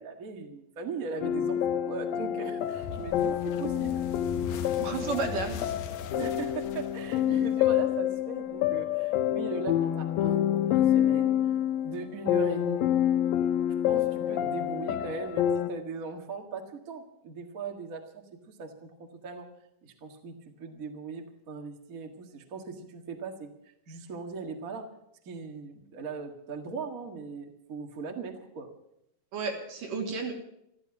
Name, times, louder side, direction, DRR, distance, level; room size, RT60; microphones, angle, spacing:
voice 1, 0.0-4.0 6.2-11.3 11.8-12.9 13.8-19.5 19.8-23.5 23.9-24.9 25.2-28.7, right 4 dB, 35° right, 4 dB, 1.4 m, -39 dB
sound 1, 1.2-15.7, left 11 dB, 90° left, 2.6 m, -27 dB
sound 2, 2.7-7.9, left 7 dB, 65° left, 1.9 m, -40 dB
voice 2, 4.8-5.6 29.3-30.3, right 4 dB, 70° right, 1 dB, 4.3 m, -32 dB
14.0 x 13.5 x 7.2 m, 0.78 s
omnidirectional pair, 4.0 m